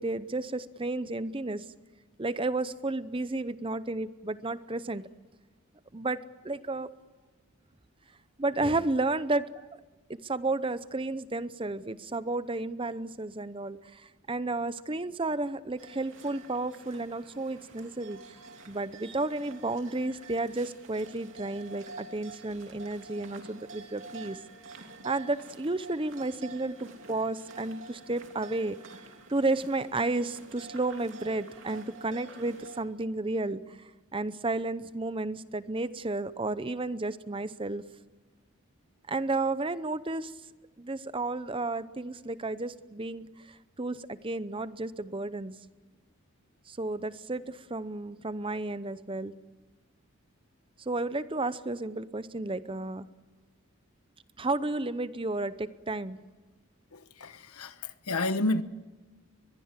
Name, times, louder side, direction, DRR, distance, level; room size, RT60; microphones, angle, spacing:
voice 1, 0.0-1.7 2.2-5.1 5.9-6.9 8.4-9.7 10.1-18.2 18.7-24.4 25.0-28.8 29.3-37.8 39.1-40.3 40.8-45.6 46.7-49.3 50.8-53.1 54.4-56.2, right 2 dB, 25° right, 0.7 m, -32 dB
sound 1, 15.8-32.8, right 3 dB, 60° right, 2.9 m, -49 dB
voice 2, 56.9-58.6, left 2 dB, 90° left, 1.2 m, -30 dB
23.0 x 21.5 x 7.5 m
head